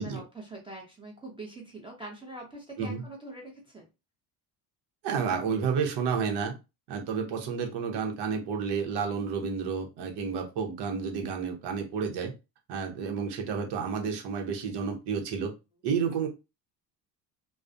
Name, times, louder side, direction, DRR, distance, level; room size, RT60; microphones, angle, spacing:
voice 1, 0.0-3.9, right 2 dB, 10° right, -2 dB, 0.7 m, -44 dB
voice 2, 5.0-6.6 6.9-12.3 12.7-15.5 15.8-16.3, right 6 dB, 70° right, 3 dB, 0.9 m, -30 dB
2.3 x 2.1 x 2.5 m, 0.26 s
cardioid pair, 105°, 42 cm